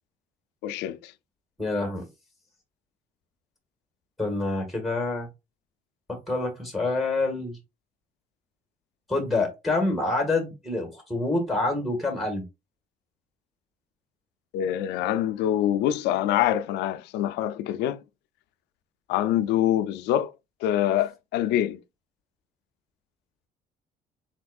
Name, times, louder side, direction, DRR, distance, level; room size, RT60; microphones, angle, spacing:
voice 1, 0.6-1.1 14.5-18.0 19.1-20.3 20.6-21.8, left 11 dB, 85° left, 0.5 m, -25 dB
voice 2, 1.6-2.0 4.2-5.3 6.1-7.6 9.1-12.4, left 2 dB, ahead, 1.6 m, -27 dB
4.3 x 4.3 x 2.3 m
cardioid pair, 110°, 17 cm